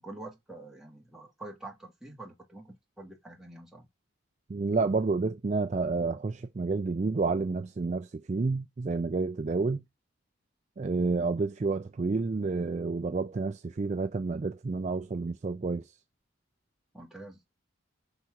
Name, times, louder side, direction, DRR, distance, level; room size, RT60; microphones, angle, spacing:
voice 1, 0.0-3.9 16.9-17.4, right 2 dB, ahead, 1.4 m, -46 dB
voice 2, 4.5-9.8 10.8-15.8, right 3 dB, 35° right, 0.3 m, -29 dB
5.8 x 4.2 x 4.8 m
head